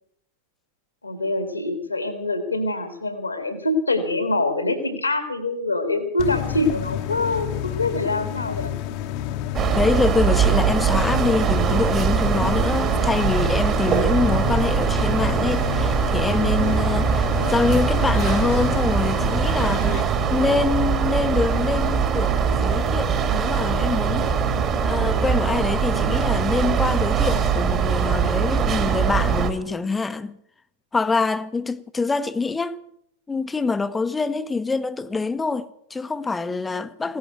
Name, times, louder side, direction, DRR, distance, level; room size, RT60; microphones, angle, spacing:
voice 1, 1.0-8.7, left 2 dB, 80° left, 2.2 m, -25 dB
sound 1, 6.2-20.0, left 12 dB, 45° left, 1.1 m, -30 dB
sound 2, 9.5-29.5, right 7 dB, 30° right, 1.7 m, -22 dB
voice 2, 9.7-22.4 22.6-30.3 30.9-32.8 33.3-37.2, left 4 dB, 10° left, 0.8 m, -25 dB
16.5 x 11.0 x 7.9 m
figure-of-eight pair, 90°, 0 cm